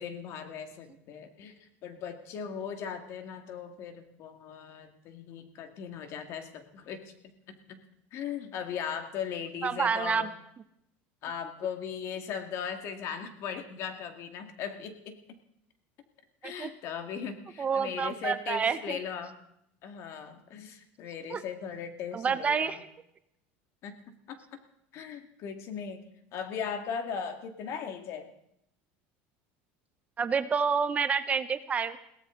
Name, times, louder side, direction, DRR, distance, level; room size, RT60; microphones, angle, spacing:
voice 1, 0.0-7.8 8.1-10.3 11.2-15.2 16.4-19.4 19.8-22.8 23.8-24.0 24.3-24.6 24.9-26.0 26.3-28.3, left 7 dB, 50° left, 6 dB, 2.1 m, -38 dB
voice 2, 9.6-10.3 16.4-16.7 17.6-19.0 21.3-21.4 22.1-22.8 30.2-32.0, right 6 dB, 25° right, 12 dB, 0.7 m, -28 dB
22.0 x 17.0 x 3.9 m, 0.76 s
supercardioid pair, 130°, 6 cm